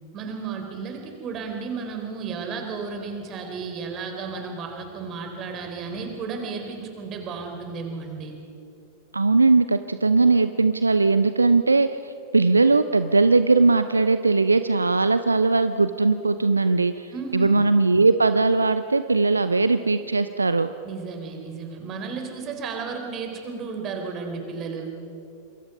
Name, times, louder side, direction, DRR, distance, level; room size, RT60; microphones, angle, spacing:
voice 1, 0.1-8.4 17.1-17.7 20.8-24.9, right 5 dB, 30° right, 4 dB, 4.1 m, -33 dB
voice 2, 9.1-20.7, right 3 dB, 80° right, 12 dB, 0.6 m, -20 dB
27.0 x 22.0 x 5.4 m, 2.7 s
figure-of-eight pair, 90°, 0 cm